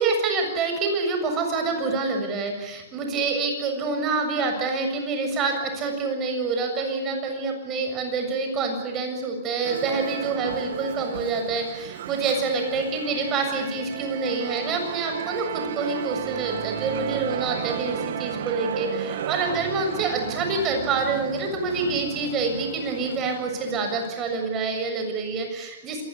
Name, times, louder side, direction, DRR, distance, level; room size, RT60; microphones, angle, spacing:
voice 1, 0.0-26.0, right 4 dB, 25° right, 4 dB, 7.2 m, -27 dB
Musical instrument, 9.6-24.3, right 9 dB, 65° right, 2.4 m, -34 dB
27.0 x 20.0 x 8.5 m, 0.89 s
hypercardioid pair, 150°, 0 cm